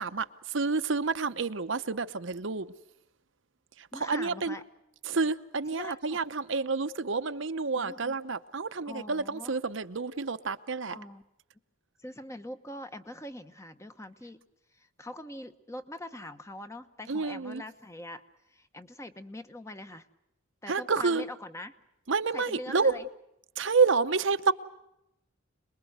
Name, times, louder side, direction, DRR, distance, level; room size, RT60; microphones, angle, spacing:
voice 1, 0.0-2.7 3.8-4.6 5.0-11.0 17.1-17.6 20.7-21.2 22.1-22.9 23.6-24.5, right 4 dB, 65° right, 0.9 m, -29 dB
voice 2, 3.9-4.6 5.7-6.2 7.8-8.2 8.9-9.5 10.9-11.2 12.0-14.4 14.7-20.1 20.6-21.8 22.3-23.1, left 1 dB, 15° left, 1.1 m, -43 dB
27.0 x 21.5 x 8.1 m
head